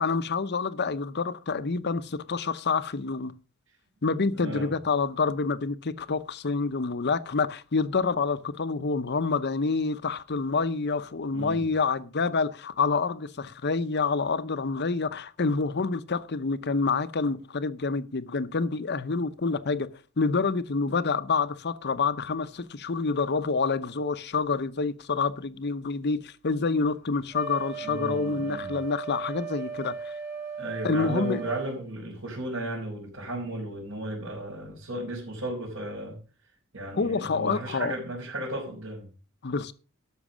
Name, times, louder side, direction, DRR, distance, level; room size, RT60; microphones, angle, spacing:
voice 1, 0.0-3.3 4.0-19.9 20.2-30.1 30.8-31.4 36.9-37.9 39.4-39.7, left 4 dB, 50° left, 0.8 m, -27 dB
voice 2, 4.3-4.7 11.3-11.6 27.8-28.8 30.6-36.1 36.7-39.1, right 1 dB, 65° right, 4.6 m, -35 dB
Wind instrument woodwind instrument, 27.3-31.8, right 6 dB, 10° right, 1.8 m, -37 dB
12.5 x 6.1 x 6.2 m
head